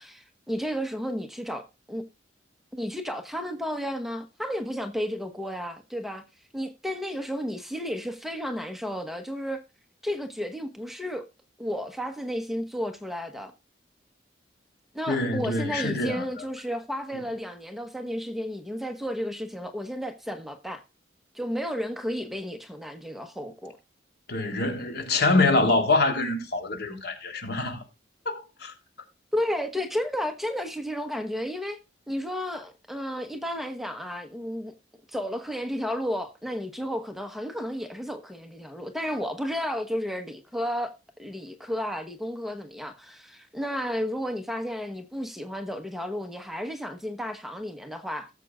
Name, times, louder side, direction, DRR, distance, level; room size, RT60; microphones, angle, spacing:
voice 1, 0.0-2.0 2.7-6.2 6.5-9.6 10.0-11.2 11.6-13.5 14.9-20.8 21.3-23.8 29.3-31.8 32.1-34.7 35.1-40.9 41.2-48.3, equal, ahead, 1.0 m, -32 dB
voice 2, 15.1-16.2 24.3-27.8 28.2-28.7, left 2 dB, 60° left, 3.3 m, -25 dB
18.0 x 7.6 x 2.4 m
head